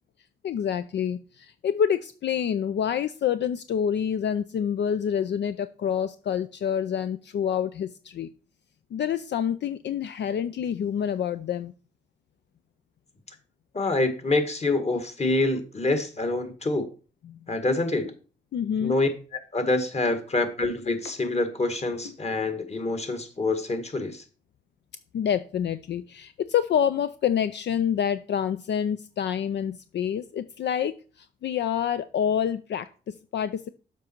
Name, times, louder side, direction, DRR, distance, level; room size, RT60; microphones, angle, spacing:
voice 1, 0.4-8.3 8.9-11.7 17.3-17.4 18.5-19.0 25.1-33.7, left 8 dB, 65° left, 12 dB, 0.5 m, -27 dB
voice 2, 13.7-16.9 17.5-18.1 18.8-19.1 19.5-24.2, left 2 dB, 35° left, 7 dB, 1.8 m, -26 dB
sound 1, 18.0-18.1 19.0-19.1 20.0-20.1 21.0-21.1 22.0-22.1, left 5 dB, 85° left, 1.5 m, -41 dB
7.3 x 5.4 x 4.5 m, 0.37 s
cardioid pair, 60°, 20 cm